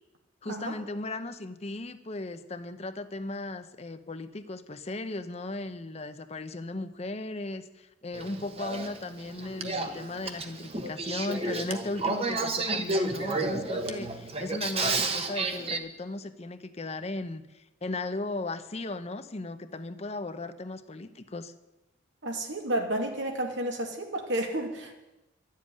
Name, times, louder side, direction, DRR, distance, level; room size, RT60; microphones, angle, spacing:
voice 1, 0.4-21.5, left 2 dB, 35° left, 10 dB, 0.7 m, -36 dB
Male speech man speaking / Female speech woman speaking / Conversation, 8.1-15.8, right 3 dB, 30° right, 1.1 m, -31 dB
voice 2, 22.2-25.0, right 1 dB, 80° right, 2 dB, 2.4 m, -31 dB
12.0 x 7.6 x 9.9 m, 0.99 s
head